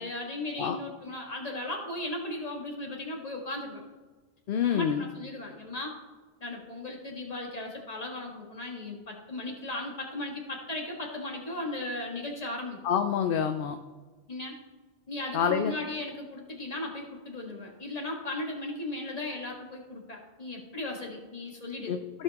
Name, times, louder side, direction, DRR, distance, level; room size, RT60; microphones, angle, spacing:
voice 1, 0.0-3.8 4.6-6.0 6.4-12.8 14.3-14.6 15.1-22.0, left 2 dB, 35° left, 0 dB, 1.7 m, -37 dB
voice 2, 4.5-5.0 12.8-13.8 15.3-15.7 21.9-22.2, left 8 dB, 65° left, 7 dB, 0.7 m, -27 dB
15.5 x 5.6 x 2.9 m, 1.3 s
omnidirectional pair, 1.1 m